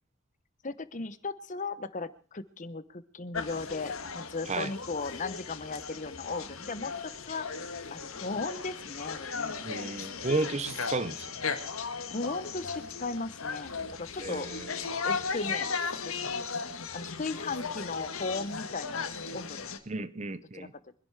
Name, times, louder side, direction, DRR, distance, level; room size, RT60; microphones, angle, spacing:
voice 1, 0.6-6.9 7.3-7.5 7.9-9.5 12.1-14.5 15.0-15.7 16.0-16.4 16.9-19.1 19.3-19.7 20.5-20.7, left 3 dB, 35° left, 0.9 m, -36 dB
sound 1, 3.3-19.8, left 5 dB, 85° left, 1.6 m, -36 dB
voice 2, 9.6-11.3 14.2-14.8 19.9-20.7, right 3 dB, 35° right, 0.8 m, -33 dB
24.0 x 11.0 x 4.8 m
head